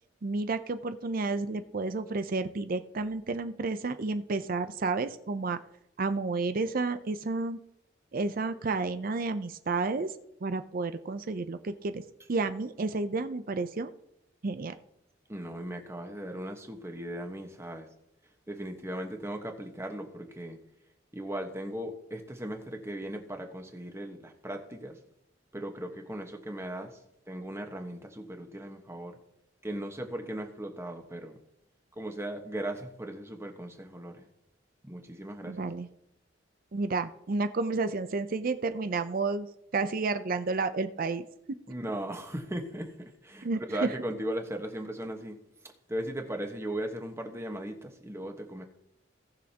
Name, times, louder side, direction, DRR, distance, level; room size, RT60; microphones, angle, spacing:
voice 1, 0.2-5.6 6.0-7.6 8.1-10.1 10.4-12.0 12.3-13.9 14.4-14.7 35.4-35.9 36.7-41.2 43.4-43.9, right 3 dB, 50° right, 10 dB, 0.5 m, -31 dB
voice 2, 15.3-17.9 18.5-20.6 21.1-25.0 25.5-29.2 29.6-31.4 31.9-34.3 34.8-35.7 41.7-48.6, right 1 dB, 15° right, 4 dB, 1.3 m, -38 dB
18.5 x 6.4 x 2.9 m, 0.80 s
head